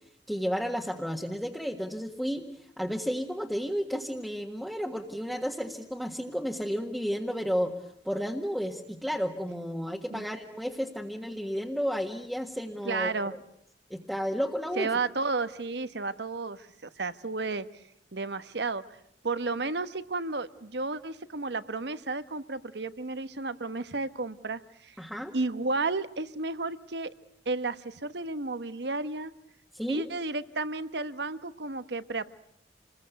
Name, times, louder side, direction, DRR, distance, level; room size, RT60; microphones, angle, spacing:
voice 1, 0.3-2.5 2.8-7.7 8.0-13.1 13.9-14.9 25.0-25.3 29.7-30.1, equal, ahead, -1 dB, 1.6 m, -32 dB
voice 2, 12.8-13.3 14.8-17.6 18.1-18.8 19.2-24.9 25.3-27.1 27.5-29.3 29.9-32.2, right 3 dB, 70° right, 13 dB, 1.1 m, -32 dB
28.0 x 21.5 x 8.1 m, 0.71 s
head